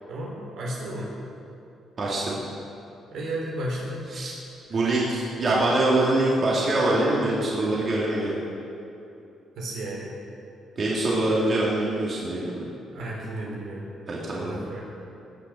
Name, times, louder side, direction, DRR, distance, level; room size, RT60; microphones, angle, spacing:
voice 1, 0.1-1.1 3.1-4.0 4.7-4.8 9.6-10.1 12.9-13.9 14.4-14.8, right 1 dB, 75° right, -4 dB, 3.7 m, -33 dB
voice 2, 2.0-2.4 4.1-4.3 4.7-8.3 10.8-12.6 14.1-14.5, right 2 dB, 45° right, -6 dB, 2.8 m, -24 dB
18.0 x 6.6 x 6.4 m, 2.8 s
cardioid pair, 90°, 0 cm